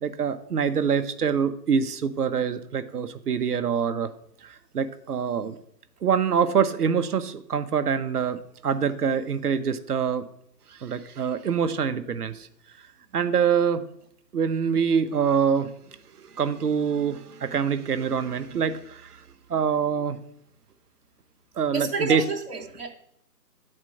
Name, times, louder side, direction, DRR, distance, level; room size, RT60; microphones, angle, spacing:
voice 1, 0.0-4.1 4.4-5.6 6.0-10.2 10.7-12.5 13.1-13.8 14.3-19.2 19.5-20.2 21.6-22.2, right 7 dB, 65° right, 10 dB, 0.8 m, -25 dB
voice 2, 21.7-22.9, right 4 dB, 40° right, -4 dB, 1.1 m, -29 dB
8.6 x 4.4 x 6.2 m, 0.72 s
hypercardioid pair, 175°, 50 cm